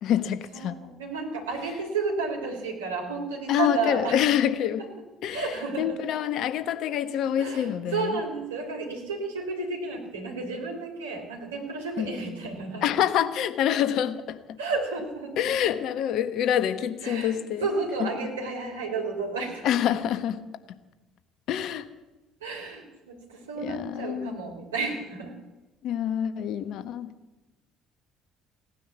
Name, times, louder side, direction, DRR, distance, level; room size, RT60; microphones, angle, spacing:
voice 1, 0.0-0.8 3.5-4.8 5.2-8.1 12.0-12.1 12.8-14.6 15.4-17.7 18.0-18.1 19.6-20.4 21.5-21.9 23.6-24.4 25.8-27.1, left 10 dB, 55° left, 1.2 m, -26 dB
voice 2, 0.5-4.4 5.3-6.0 7.4-12.9 14.6-15.5 17.0-20.0 22.4-25.3, right 4 dB, 80° right, 3.3 m, -32 dB
17.0 x 10.0 x 8.2 m
figure-of-eight pair, 55°, 0 cm